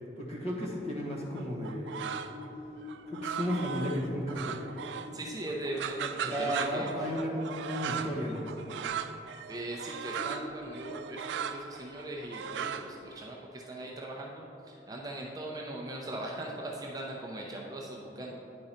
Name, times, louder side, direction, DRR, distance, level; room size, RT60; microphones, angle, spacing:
voice 1, 0.2-2.0 3.1-4.6 6.2-8.9, equal, 35° left, -3 dB, 1.2 m, -34 dB
sound 1, 1.3-2.5 2.8-5.2 5.5-13.2, right 7 dB, 85° right, 0.3 m, -38 dB
sound 2, 1.8-6.6 7.0-7.1 7.5-8.0 8.4-8.5 9.2-9.3 9.5-9.7 10.0-11.2, left 1 dB, 65° left, 1.1 m, -46 dB
voice 2, 5.1-7.1 9.5-18.3, right 1 dB, 20° right, -2 dB, 0.5 m, -40 dB
9.8 x 3.8 x 4.3 m, 3.0 s
head